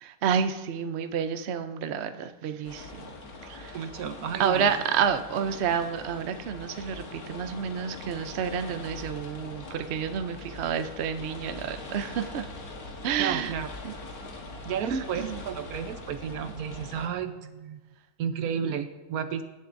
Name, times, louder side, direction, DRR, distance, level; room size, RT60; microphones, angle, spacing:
voice 1, 0.0-3.1 3.4-3.8 4.4-12.5 13.0-13.5 13.8-13.9 14.9-15.4, right 7 dB, 60° right, 9 dB, 0.8 m, -29 dB
sound 1, 2.6-17.1, left 3 dB, 80° left, 1.8 m, -42 dB
voice 2, 3.7-4.7 13.2-13.7 14.6-17.8 18.2-19.4, right 8 dB, 80° right, 9 dB, 1.3 m, -32 dB
17.5 x 8.0 x 2.6 m, 1.1 s
omnidirectional pair, 1.6 m